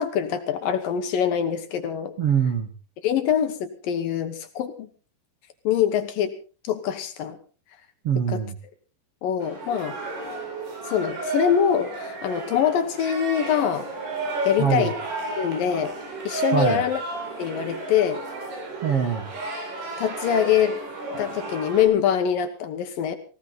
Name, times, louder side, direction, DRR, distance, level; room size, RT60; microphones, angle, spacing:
voice 1, 0.0-2.1 3.0-4.9 5.6-6.3 6.6-7.4 8.3-8.4 9.2-10.0 10.9-13.9 14.4-14.9 15.4-15.9 16.2-17.0 17.4-18.2 20.0-20.8 21.2-23.2, left 8 dB, 65° left, 8 dB, 2.6 m, -24 dB
voice 2, 2.2-2.7 8.0-8.6 14.6-14.9 16.5-16.8 18.8-19.3, right 7 dB, 50° right, 4 dB, 1.8 m, -23 dB
sound 1, 9.4-21.9, right 3 dB, 75° right, 6.7 m, -32 dB
19.0 x 17.0 x 4.1 m, 0.36 s
omnidirectional pair, 4.8 m